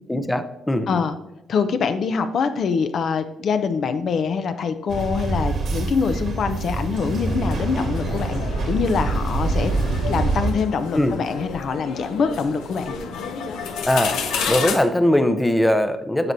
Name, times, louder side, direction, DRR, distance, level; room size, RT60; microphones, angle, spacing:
voice 1, 0.1-1.0 10.9-11.2 13.9-14.2 14.5-16.3, left 1 dB, 10° left, 9 dB, 0.6 m, -20 dB
voice 2, 1.5-9.7 10.1-12.9, left 5 dB, 60° left, 9 dB, 0.6 m, -24 dB
sound 1, 4.9-10.5, right 3 dB, 60° right, 1.8 m, -25 dB
sound 2, 7.3-14.8, left 5 dB, 90° left, 1.0 m, -31 dB
10.5 x 6.0 x 2.7 m, 0.90 s
cardioid pair, 90°, 0 cm